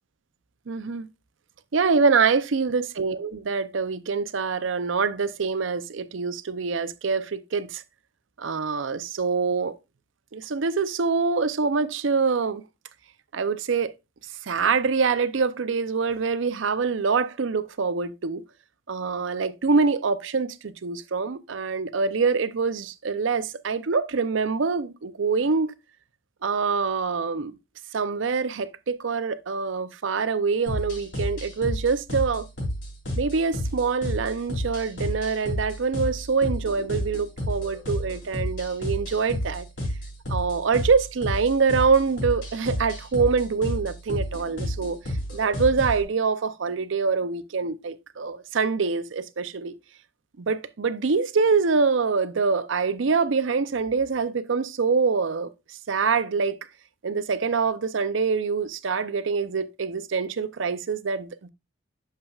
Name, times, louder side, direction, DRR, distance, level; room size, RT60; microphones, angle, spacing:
voice 1, 0.7-1.1 1.7-7.8 8.4-9.7 10.3-12.6 13.3-13.9 14.4-18.4 18.9-25.7 26.4-27.5 27.9-32.4 33.2-39.6 40.3-45.0 45.3-49.7 50.4-56.6 57.0-61.5, right 5 dB, 75° right, 0.6 m, -25 dB
sound 1, 30.7-46.0, equal, 65° left, 3.4 m, -31 dB
8.8 x 6.7 x 2.4 m
head